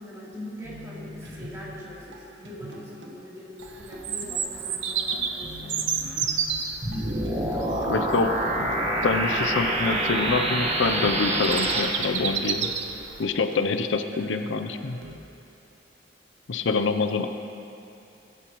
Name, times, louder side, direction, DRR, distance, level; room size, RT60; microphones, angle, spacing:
voice 1, 0.0-6.3, left 1 dB, 15° right, -8 dB, 3.3 m, -42 dB
sound 1, 0.6-3.2 3.6-3.7 3.9-8.0 8.4-8.5 8.7-15.2, equal, 90° right, 1.4 m, -44 dB
Bird vocalization bird call bird song, 3.6-13.2, right 7 dB, 75° right, 0.9 m, -32 dB
sound 2, 6.8-11.8, right 1 dB, 35° right, 1.5 m, -26 dB
voice 2, 7.9-8.7 9.0-12.7 13.2-15.0 16.5-17.3, left 4 dB, 80° left, 7 dB, 0.6 m, -26 dB
21.5 x 11.5 x 3.1 m, 2.7 s
head